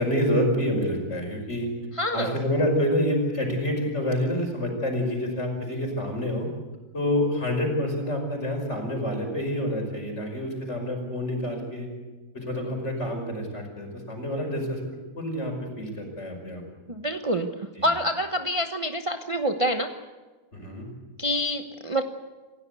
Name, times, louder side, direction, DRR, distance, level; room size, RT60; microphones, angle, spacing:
voice 1, 0.0-1.7 2.1-6.5 6.9-11.9 12.3-14.8 15.2-16.6 17.8-17.9 20.5-20.9, left 1 dB, 45° left, 2 dB, 5.8 m, -27 dB
voice 2, 2.0-2.4 16.9-19.9 21.2-22.0, equal, 25° right, 6 dB, 1.0 m, -27 dB
27.5 x 16.0 x 8.3 m, 1.3 s
omnidirectional pair, 1.6 m